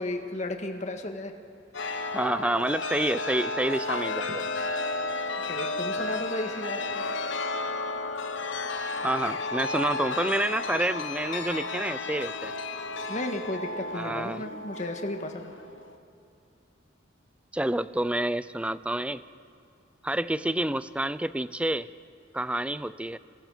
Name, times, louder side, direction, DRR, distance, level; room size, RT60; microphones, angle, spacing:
voice 1, 0.0-1.3 5.5-7.0 13.1-15.5, left 1 dB, 40° left, 4 dB, 1.7 m, -34 dB
Chime, 1.7-16.0, left 3 dB, 80° left, 1.2 m, -33 dB
voice 2, 2.1-4.4 9.0-12.5 13.9-14.4 17.5-19.2 20.0-21.9 22.3-23.2, right 1 dB, 5° right, 15 dB, 0.4 m, -28 dB
29.0 x 21.5 x 5.1 m, 2.7 s
head